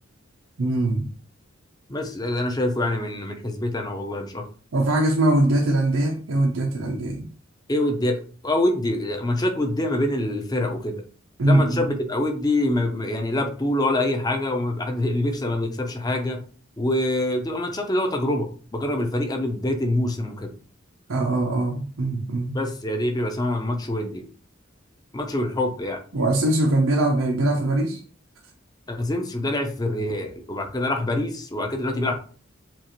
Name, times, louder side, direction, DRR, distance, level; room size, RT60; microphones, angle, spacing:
voice 1, 0.6-1.0 4.7-7.3 11.4-11.9 21.1-22.5 26.1-28.0, right 1 dB, 85° right, 0.7 m, -22 dB
voice 2, 1.9-4.5 7.7-11.0 11.5-16.4 16.8-20.5 22.5-24.2 25.1-26.0 28.9-32.1, left 1 dB, 20° left, 0.6 m, -25 dB
7.4 x 2.5 x 2.9 m
head